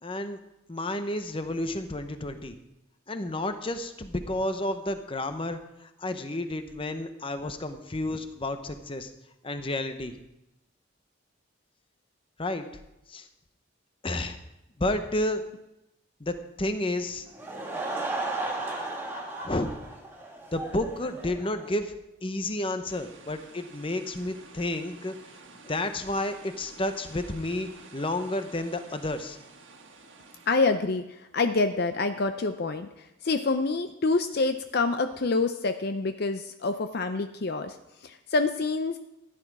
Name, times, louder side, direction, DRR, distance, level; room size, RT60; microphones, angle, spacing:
voice 1, 0.0-0.4 0.7-2.6 3.1-9.1 9.4-10.1 12.4-12.7 13.1-13.3 14.0-14.4 14.8-15.4 16.2-17.2 19.4-19.8 20.5-21.9 22.2-25.1 25.6-29.4, left 1 dB, 25° left, 9 dB, 0.9 m, -31 dB
Laughter / Crowd, 17.3-21.8, right 2 dB, 10° right, 1.8 m, -35 dB
sound 1, 22.9-30.7, right 3 dB, 75° right, 1.7 m, -51 dB
voice 2, 30.5-39.0, left 3 dB, 50° left, 8 dB, 0.5 m, -27 dB
14.5 x 10.0 x 4.8 m, 0.89 s
head